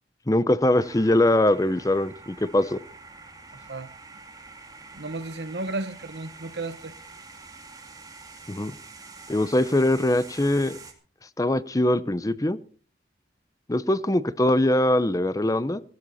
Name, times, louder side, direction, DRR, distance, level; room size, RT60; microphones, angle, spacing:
voice 1, 0.3-2.8 8.5-8.7 9.3-10.8 11.4-12.6 13.7-15.8, left 1 dB, 20° left, 0.7 m, -22 dB
sound 1, 0.7-10.9, right 4 dB, 20° right, 2.5 m, -46 dB
voice 2, 3.5-3.9 4.9-6.9, right 2 dB, 70° right, 1.1 m, -34 dB
17.0 x 15.5 x 4.1 m
head